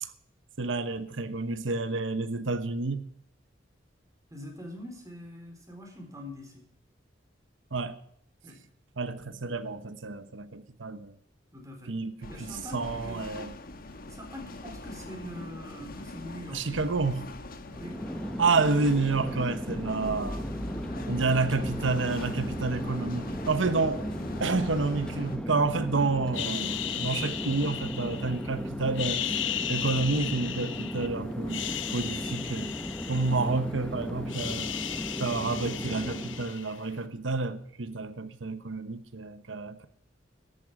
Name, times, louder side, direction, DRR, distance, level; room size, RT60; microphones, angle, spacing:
voice 1, 0.6-3.0 7.7-8.0 9.0-11.1 11.9-13.5 16.5-17.3 18.4-20.4 21.1-24.1 24.4-29.3 29.7-31.6 31.9-32.8 33.1-34.7 35.2-39.9, right 3 dB, 80° right, 1.0 m, -29 dB
voice 2, 4.3-6.6 8.4-8.6 11.5-11.9 12.3-13.3 14.1-16.7 17.5-18.0, left 1 dB, 20° right, 3.9 m, -43 dB
sound 1, 12.2-25.4, left 2 dB, 50° left, 1.3 m, -41 dB
Chatter / Fixed-wing aircraft airplane, 17.6-36.6, equal, 5° left, 0.8 m, -36 dB
sound 2, 26.3-28.5 28.9-31.1 31.4-33.8 34.1-37.0, left 10 dB, 75° left, 1.0 m, -35 dB
13.5 x 8.9 x 6.0 m
head